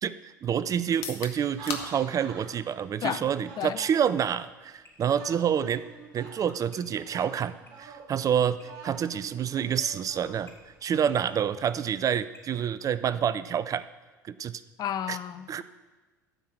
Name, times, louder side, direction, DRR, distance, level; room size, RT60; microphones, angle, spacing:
voice 1, 0.0-5.8 6.1-10.5 10.8-13.9 14.2-14.6 15.1-15.2 15.5-15.6, right 8 dB, 35° right, 15 dB, 0.5 m, -28 dB
sound 1, 0.9-14.7, left 7 dB, 65° left, 1.3 m, -48 dB
sound 2, 1.6-4.5 5.0-6.6 6.9-11.7, right 5 dB, 55° right, 1.4 m, -48 dB
sound 3, 4.1-13.5, left 3 dB, 25° left, 3.9 m, -52 dB
voice 2, 14.8-15.6, left 10 dB, 45° left, 12 dB, 0.7 m, -32 dB
13.0 x 5.7 x 7.5 m, 1.3 s
hypercardioid pair, 70°, 10 cm